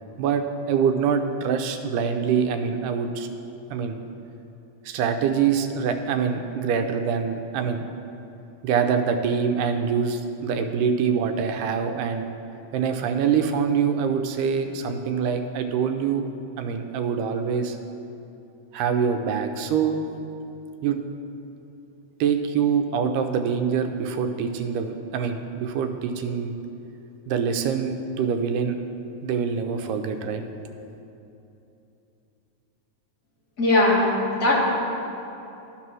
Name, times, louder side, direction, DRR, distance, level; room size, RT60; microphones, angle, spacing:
voice 1, 0.2-3.3 3.7-4.0 4.9-7.8 8.6-12.3 12.7-16.2 16.6-17.8 18.7-20.0 20.8-21.0 22.2-26.6 27.3-28.8 29.2-30.4, right 6 dB, 85° right, 6 dB, 2.2 m, -25 dB
voice 2, 33.6-34.1 34.3-34.5, left 2 dB, 40° left, -5 dB, 1.3 m, -19 dB
12.5 x 4.3 x 6.1 m, 2.9 s
omnidirectional pair, 3.6 m